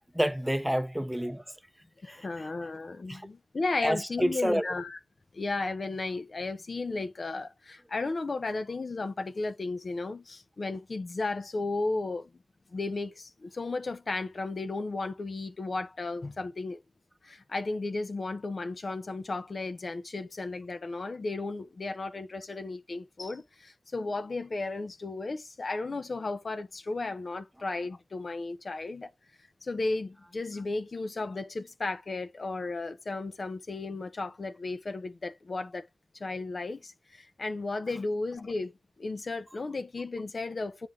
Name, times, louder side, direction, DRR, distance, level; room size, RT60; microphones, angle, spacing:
voice 1, 0.1-1.4 2.0-2.5 3.1-3.3 3.8-4.6, equal, 5° right, 0.7 m, -29 dB
voice 2, 2.0-5.0 5.3-12.3 12.7-16.8 17.2-29.1 29.6-35.8 36.2-40.9, left 3 dB, 55° left, 0.8 m, -34 dB
9.1 x 4.4 x 3.6 m
wide cardioid pair, 75°, 0 cm